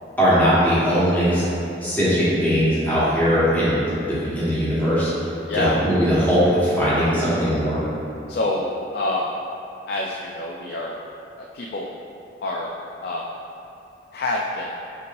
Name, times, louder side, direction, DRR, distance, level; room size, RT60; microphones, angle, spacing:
voice 1, 0.2-1.5 1.8-3.8 4.1-5.1 5.6-7.8, equal, 10° left, -11 dB, 1.2 m, -19 dB
voice 2, 5.5-5.8 8.3-9.3 9.9-10.9 11.5-11.9 12.4-12.7 13.0-13.3 14.1-14.7, left 2 dB, 60° left, -1 dB, 0.3 m, -26 dB
5.7 x 3.0 x 2.6 m, 2.8 s
head